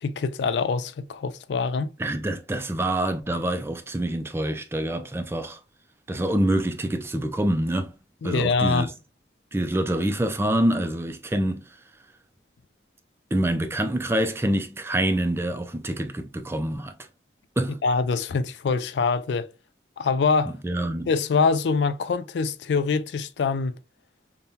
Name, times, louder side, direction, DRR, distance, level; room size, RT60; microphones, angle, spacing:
voice 1, 0.0-1.9 8.2-8.9 17.8-19.5 20.0-20.5 21.1-23.7, left 4 dB, 85° left, 0.4 m, -24 dB
voice 2, 2.0-5.6 6.1-7.9 8.2-8.9 9.5-11.6 13.3-16.9 17.6-17.8 20.6-21.1, right 1 dB, 15° right, 0.4 m, -26 dB
5.2 x 2.2 x 2.7 m
head